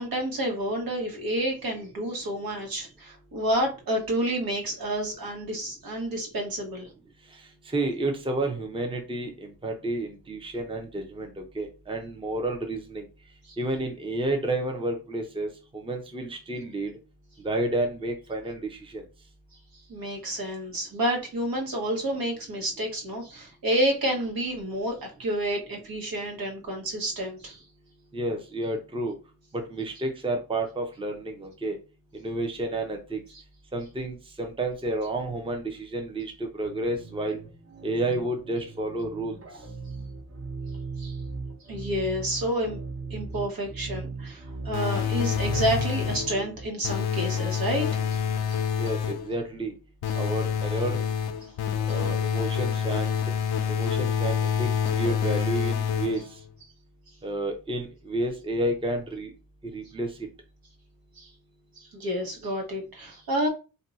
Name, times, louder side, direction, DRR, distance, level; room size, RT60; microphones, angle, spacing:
voice 1, 0.0-6.9 13.4-13.5 19.9-27.6 33.3-33.4 41.0-41.2 41.7-42.8 43.1-48.2 48.5-48.6 51.9-52.0 61.2-61.3 61.8-63.5, right 1 dB, 70° right, 1 dB, 1.2 m, -29 dB
voice 2, 7.7-13.0 13.6-15.5 15.7-16.9 17.4-19.0 28.1-29.1 29.7-31.8 32.1-33.2 33.7-37.4 37.8-39.4 48.8-49.7 50.1-51.0 51.9-53.2 53.7-54.7 55.0-56.2 57.2-59.3 59.7-60.1, right 1 dB, 15° right, 3 dB, 0.6 m, -30 dB
sound 1, 36.6-46.7, right 3 dB, 40° right, 0.9 m, -38 dB
sound 2, 44.7-46.4 46.8-49.3 50.0-56.4, left 7 dB, 90° left, 0.5 m, -27 dB
2.6 x 2.2 x 4.0 m, 0.31 s
wide cardioid pair, 100°, 37 cm